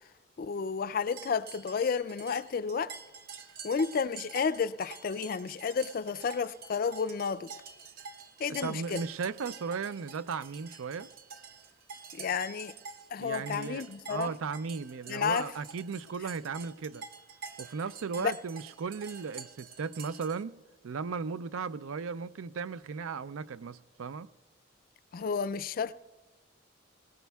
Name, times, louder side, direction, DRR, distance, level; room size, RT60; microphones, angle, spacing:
voice 1, 0.4-3.0 3.6-7.5 8.4-9.0 12.1-12.7 13.1-14.3 15.1-15.5 18.2-18.3 25.1-25.9, left 6 dB, 45° left, 0.3 m, -31 dB
sound 1, 1.1-20.4, right 5 dB, 45° right, 0.7 m, -48 dB
voice 2, 8.6-11.1 13.2-17.0 17.6-20.6 20.8-24.3, right 5 dB, 85° right, 0.4 m, -36 dB
21.0 x 18.5 x 2.3 m
head